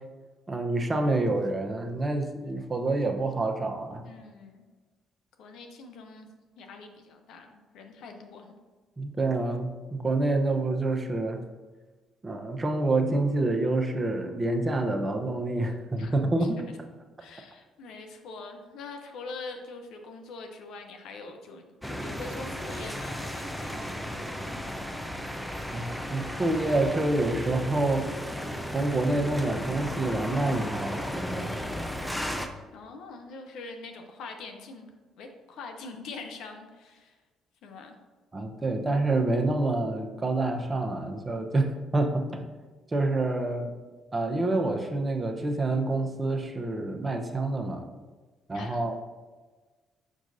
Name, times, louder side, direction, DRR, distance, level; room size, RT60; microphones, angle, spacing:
voice 1, 0.5-4.0 9.0-11.4 12.2-16.6 25.7-28.1 28.7-31.5 38.3-42.4 42.9-43.7 44.1-47.9 48.5-49.0, right 2 dB, 30° right, 4 dB, 0.9 m, -27 dB
voice 2, 4.0-4.6 5.4-6.3 6.6-8.5 16.0-16.5 17.2-21.7 22.0-24.4 32.7-37.2 37.6-37.9 48.5-48.8, left 3 dB, 70° left, 5 dB, 0.7 m, -44 dB
sound 1, 21.8-32.5, equal, 5° left, 0.7 m, -35 dB
6.1 x 5.9 x 2.7 m, 1.3 s
hypercardioid pair, 55°, 0 cm